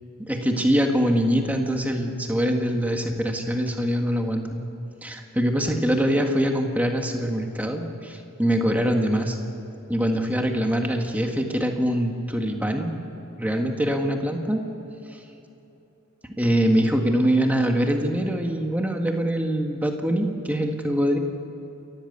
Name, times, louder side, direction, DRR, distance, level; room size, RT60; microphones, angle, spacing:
voice 1, 0.2-4.6 5.0-9.4 9.9-12.9 13.4-14.6 15.1-15.2 16.4-21.2, equal, 5° right, 3 dB, 1.8 m, -23 dB
29.5 x 14.0 x 8.2 m, 3.0 s
head